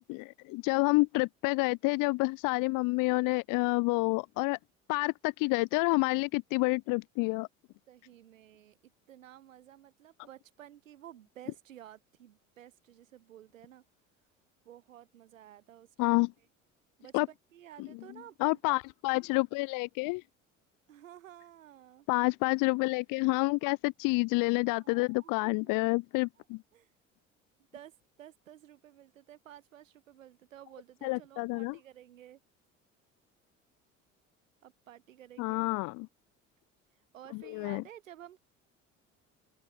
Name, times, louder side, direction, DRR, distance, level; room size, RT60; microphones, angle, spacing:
voice 1, 0.1-4.6 4.9-7.5 16.0-16.3 17.1-17.3 18.4-20.2 22.1-26.6 31.0-31.8 35.4-36.1 37.5-37.8, left 26 dB, 55° left, 0.9 m, -28 dB
voice 2, 7.9-13.8 14.6-16.2 17.0-18.8 20.9-22.1 24.8-25.8 26.4-26.5 26.7-26.9 27.7-32.4 34.6-35.6 36.9-38.4, right 11 dB, 80° right, 4.6 m, -53 dB
open air
figure-of-eight pair, 60°, 39 cm